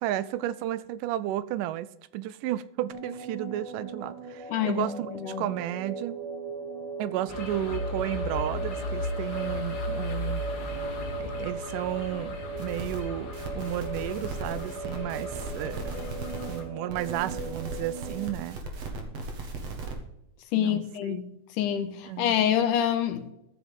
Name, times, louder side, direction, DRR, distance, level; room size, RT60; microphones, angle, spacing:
voice 1, 0.0-6.2 7.0-10.4 11.2-15.8 16.5-18.6 20.5-21.2 22.1-22.3, right 13 dB, 85° right, 2.1 m, -33 dB
sound 1, 2.9-18.3, right 3 dB, 30° right, 3.2 m, -38 dB
voice 2, 4.5-5.5 20.5-21.3 21.6-23.3, left 10 dB, 80° left, 2.5 m, -27 dB
sound 2, 7.3-16.6, left 2 dB, 50° left, 1.3 m, -36 dB
sound 3, 12.6-13.0 13.3-16.6 16.9-19.9, right 3 dB, 55° right, 2.6 m, -38 dB
14.0 x 6.3 x 5.3 m
omnidirectional pair, 3.8 m